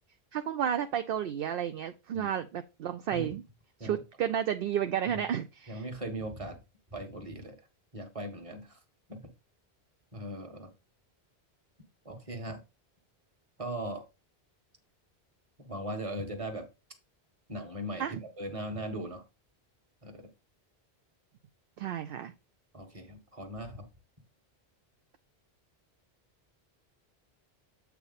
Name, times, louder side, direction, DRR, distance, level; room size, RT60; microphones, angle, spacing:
voice 1, 0.3-3.4 3.8-5.9 18.0-18.2 21.8-22.3, right 9 dB, 65° right, 0.7 m, -32 dB
voice 2, 5.7-6.6 6.9-7.5 7.9-8.8 9.1-9.2 10.1-10.7 12.0-12.6 13.6-14.0 15.6-16.7 17.5-19.2 20.0-20.3 22.7-23.8, right 1 dB, 30° right, 1.4 m, -39 dB
8.3 x 4.1 x 4.0 m
omnidirectional pair, 1.1 m